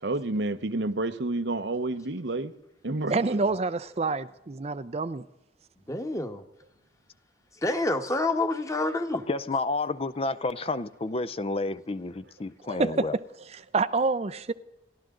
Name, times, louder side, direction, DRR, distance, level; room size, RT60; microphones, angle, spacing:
voice 1, 0.0-2.5 2.8-3.4, right 2 dB, 90° right, 1.0 m, -29 dB
voice 2, 3.1-5.2 12.7-13.2 13.5-14.5, right 3 dB, 35° right, 0.5 m, -27 dB
voice 3, 5.9-6.4 7.6-9.2, left 2 dB, 20° left, 1.4 m, -27 dB
voice 4, 9.3-13.1, left 3 dB, 35° left, 0.6 m, -30 dB
29.5 x 12.5 x 3.8 m
head